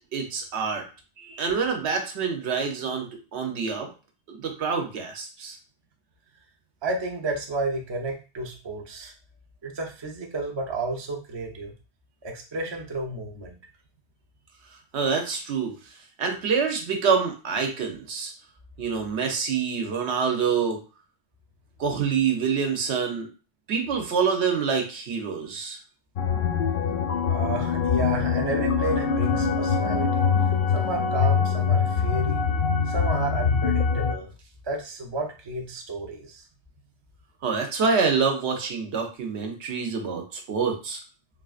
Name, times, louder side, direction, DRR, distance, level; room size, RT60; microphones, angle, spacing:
voice 1, 0.1-0.8 1.2-3.9 4.3-5.6 14.9-15.8 16.2-18.3 18.8-20.8 21.8-23.3 23.7-25.8 37.4-41.0, right 5 dB, 80° right, 4 dB, 1.0 m, -26 dB
voice 2, 6.8-9.1 9.6-11.7 12.2-13.6 27.3-30.3 30.7-32.5 32.9-34.3 34.6-36.4, right 2 dB, 35° right, 1 dB, 0.5 m, -32 dB
sound 1, 26.2-34.1, left 6 dB, 60° left, 0.6 m, -23 dB
3.6 x 2.4 x 2.4 m, 0.33 s
omnidirectional pair, 1.1 m